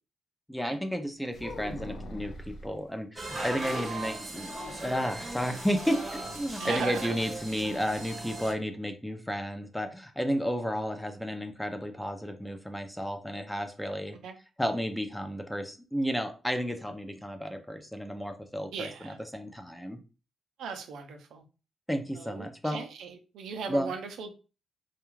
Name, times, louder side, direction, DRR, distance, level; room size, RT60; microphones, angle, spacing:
voice 1, 0.5-4.5 4.8-14.2 14.6-20.0 21.9-22.8 23.7-23.9, equal, 5° left, 0.5 m, -32 dB
sound 1, 1.3-2.7 4.5-5.4 5.7-5.8 6.2-6.5, left 1 dB, 65° left, 0.4 m, -42 dB
sound 2, 3.2-8.5, right 1 dB, 25° right, 0.7 m, -38 dB
voice 2, 6.6-7.3 14.2-14.4 18.7-19.2 20.6-21.4 22.2-24.3, right 5 dB, 85° right, 0.5 m, -37 dB
2.3 x 2.3 x 3.0 m
cardioid pair, 80°, 0 cm